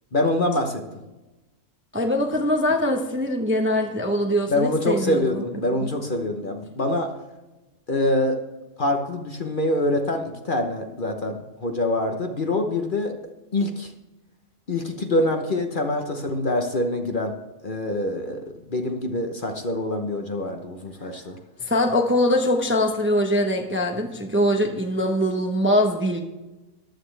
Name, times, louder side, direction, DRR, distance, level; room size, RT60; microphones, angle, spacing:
voice 1, 0.1-0.8 4.5-7.1 7.9-8.4 8.8-13.1 13.5-13.9 14.7-17.3 17.6-21.3, left 1 dB, 40° left, 4 dB, 1.1 m, -25 dB
voice 2, 1.9-5.4 5.8-5.9 21.6-26.2, left 1 dB, 10° right, 3 dB, 0.8 m, -22 dB
14.5 x 11.0 x 3.3 m, 1.1 s
omnidirectional pair, 1.5 m